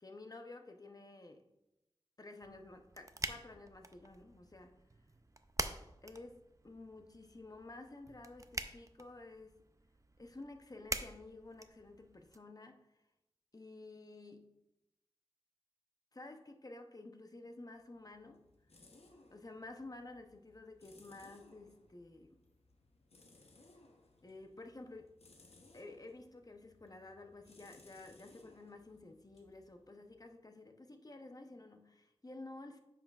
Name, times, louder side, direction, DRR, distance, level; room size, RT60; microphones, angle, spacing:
voice 1, 0.0-1.4 2.2-4.8 6.0-9.6 10.2-12.9 13.5-14.6 16.1-18.5 19.3-22.4 24.2-25.1 25.7-32.8, left 2 dB, 35° left, 5 dB, 0.7 m, -52 dB
sound 1, 2.4-12.4, right 2 dB, 30° right, 0.4 m, -46 dB
sound 2, 17.7-30.4, left 2 dB, 90° left, 0.8 m, -64 dB
9.2 x 5.8 x 2.4 m, 0.93 s
wide cardioid pair, 65°, 10 cm